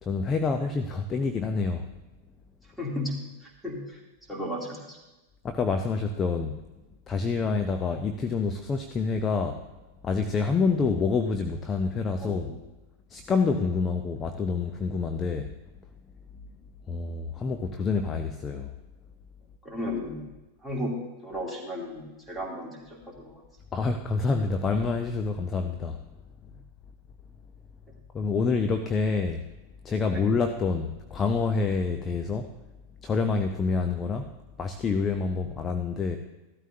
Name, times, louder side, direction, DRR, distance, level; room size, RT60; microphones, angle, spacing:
voice 1, 0.0-1.9 5.4-6.6 7.1-9.6 10.0-12.5 13.1-15.5 16.9-18.7 23.7-26.0 28.1-29.4 29.8-32.5 33.0-34.3 34.6-36.2, left 4 dB, 20° left, 6 dB, 0.7 m, -27 dB
voice 2, 2.8-3.1 3.4-4.0 4.3-5.0 12.2-12.6 19.6-20.2 20.6-20.9 21.2-23.4 30.1-30.2, left 1 dB, ahead, -2 dB, 2.9 m, -34 dB
14.5 x 12.5 x 2.8 m, 1.1 s
figure-of-eight pair, 90°, 0 cm